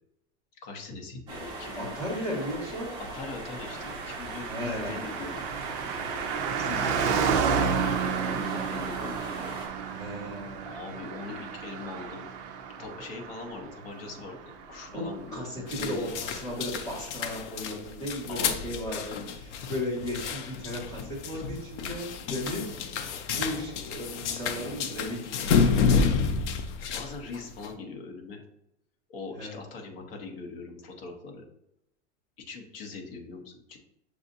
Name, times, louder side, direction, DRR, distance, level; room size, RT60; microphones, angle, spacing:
voice 1, 0.6-2.0 3.0-5.3 6.6-9.5 10.6-12.3 12.8-14.4 14.7-16.1 18.3-19.0 21.3-21.4 22.5-22.8 26.8-28.4 29.1-31.4 32.4-33.8, left 4 dB, 55° left, 3 dB, 1.0 m, -41 dB
sound 1, 1.3-9.7, right 2 dB, 10° right, 1.0 m, -40 dB
voice 2, 1.8-2.9 4.5-5.0 9.9-10.7 14.9-22.7 23.3-25.5 29.4-29.5, equal, 10° left, -6 dB, 1.3 m, -35 dB
Car passing by, 3.5-15.4 15.6-15.7, right 6 dB, 40° right, 0.5 m, -32 dB
sound 2, 15.7-27.7, left 5 dB, 80° left, 0.6 m, -30 dB
6.6 x 2.6 x 2.6 m, 0.81 s
supercardioid pair, 170°, 35 cm